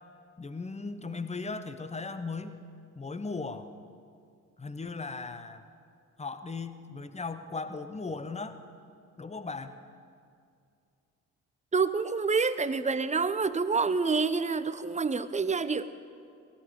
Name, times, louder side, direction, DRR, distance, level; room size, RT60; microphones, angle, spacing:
voice 1, 0.4-2.6 2.9-3.7 4.6-5.6 6.2-8.6 9.2-9.8, left 4 dB, 15° left, 11 dB, 0.9 m, -37 dB
voice 2, 11.7-15.9, right 4 dB, 15° right, 14 dB, 0.6 m, -27 dB
18.0 x 11.0 x 4.8 m, 2.3 s
figure-of-eight pair, 45°, 42 cm